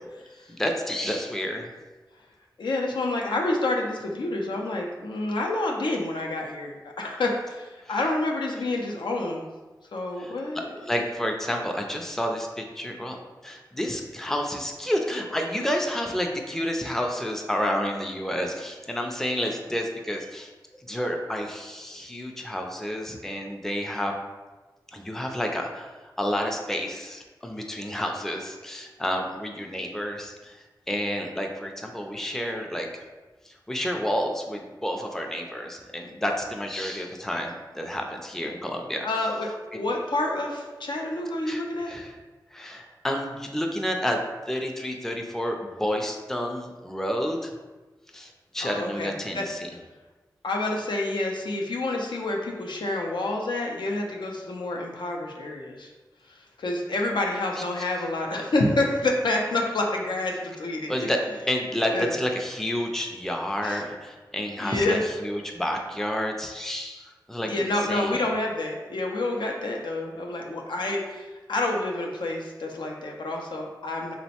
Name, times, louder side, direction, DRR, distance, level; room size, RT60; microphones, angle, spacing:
voice 1, 0.5-1.7 10.2-10.3 10.9-13.2 13.4-20.5 20.9-24.1 24.9-25.9 26.2-30.6 30.9-33.0 33.7-39.1 39.7-39.8 41.5-42.1 42.5-44.2 44.5-47.5 48.1-49.6 60.9-67.6 67.9-68.2, equal, 5° left, 2 dB, 0.4 m, -30 dB
voice 2, 2.6-9.5 9.9-11.0 39.0-41.9 48.6-49.5 50.4-55.9 56.3-61.1 61.9-62.1 63.6-63.8 64.6-65.1 67.4-74.1, left 2 dB, 80° left, 0 dB, 0.4 m, -28 dB
2.9 x 2.1 x 2.8 m, 1.2 s
cardioid pair, 45°, 8 cm